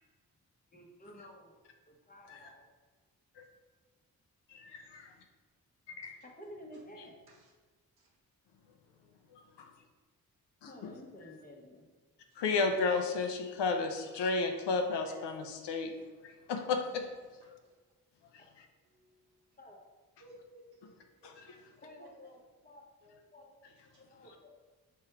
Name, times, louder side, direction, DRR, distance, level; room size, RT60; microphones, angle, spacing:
voice 1, 0.7-1.6 1.9-2.7 6.2-7.2 10.7-11.9 19.6-19.8 21.8-22.8 23.3-23.7 24.0-24.5, left 1 dB, 20° left, 0 dB, 1.1 m, -52 dB
voice 2, 4.5-5.1 6.0-6.2 9.3-9.7 10.6-10.9 12.4-15.9 16.2-17.1 17.5-17.6 18.3-18.4 21.2-21.6, left 4 dB, 75° left, 4 dB, 0.6 m, -33 dB
voice 3, 14.9-15.2 17.6-17.7 20.2-21.3 21.9-22.1, right 2 dB, 60° right, 0 dB, 1.1 m, -55 dB
3.5 x 3.3 x 4.6 m, 1.3 s
supercardioid pair, 45°, 42 cm